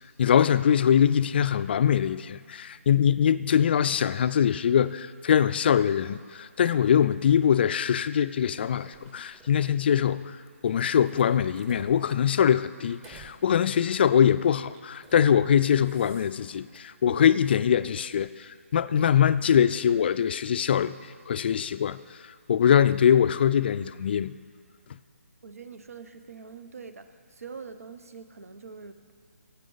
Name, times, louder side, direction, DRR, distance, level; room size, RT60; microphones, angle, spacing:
voice 1, 0.2-10.4 10.6-20.9 21.3-22.0 22.5-24.4, left 8 dB, 45° left, 14 dB, 0.3 m, -23 dB
sound 1, 6.7-7.7 8.3-9.8 10.5-13.4 13.8-14.0 14.7-15.3 15.6-16.8, right 3 dB, 20° right, 1.0 m, -54 dB
voice 2, 25.4-29.1, right 5 dB, 75° right, 9 dB, 0.9 m, -44 dB
16.5 x 8.4 x 3.9 m, 2.1 s
figure-of-eight pair, 145°, 8 cm